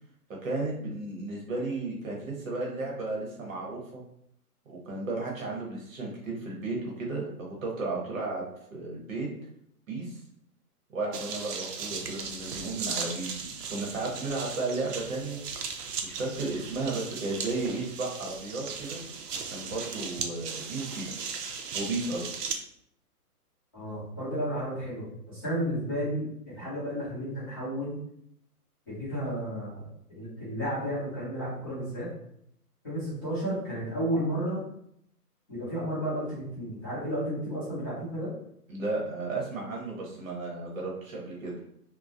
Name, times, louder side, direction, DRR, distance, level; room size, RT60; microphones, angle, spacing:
voice 1, 0.4-4.0 4.7-8.4 8.7-9.3 9.9-10.2 10.9-15.4 16.0-19.0 19.5-21.2 21.7-22.3 38.7-41.5, right 3 dB, 55° right, -2 dB, 0.9 m, -34 dB
sound 1, 11.1-22.5, right 5 dB, 80° right, 0.6 m, -37 dB
voice 2, 23.7-28.0 28.9-32.1 32.8-34.6 35.5-38.3, equal, 15° left, -14 dB, 0.7 m, -32 dB
2.3 x 2.1 x 2.5 m, 0.72 s
hypercardioid pair, 165°, 47 cm